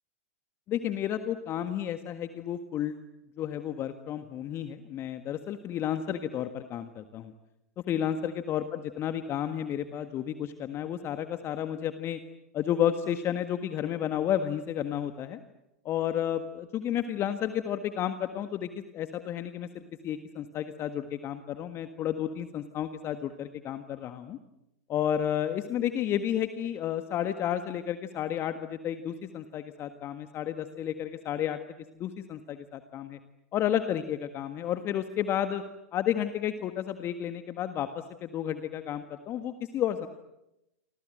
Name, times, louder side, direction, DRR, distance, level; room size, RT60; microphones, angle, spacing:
voice 1, 0.7-3.0 3.4-7.3 7.9-12.2 12.5-15.4 15.8-24.4 24.9-31.6 32.0-33.2 33.5-35.6 35.9-40.1, left 10 dB, 30° left, 9 dB, 1.6 m, -31 dB
29.0 x 25.5 x 7.9 m, 0.90 s
figure-of-eight pair, 105°, 8 cm